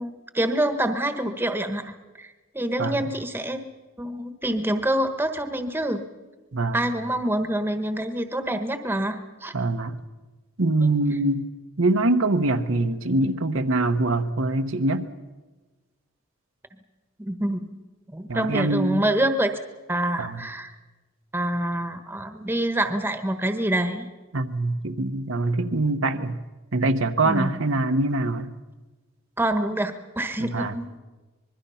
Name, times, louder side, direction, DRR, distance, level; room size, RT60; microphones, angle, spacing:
voice 1, 0.0-3.6 4.0-6.0 6.7-9.5 17.2-17.8 18.1-19.5 19.9-20.7 21.3-24.1 27.2-27.5 29.4-30.9, right 1 dB, 10° right, 7 dB, 1.2 m, -26 dB
voice 2, 9.5-10.0 10.6-11.5 11.8-15.1 18.3-19.0 20.2-20.5 24.3-26.4 26.7-28.5 30.4-30.8, right 2 dB, 70° right, 6 dB, 1.1 m, -24 dB
25.5 x 21.5 x 5.7 m, 1.2 s
head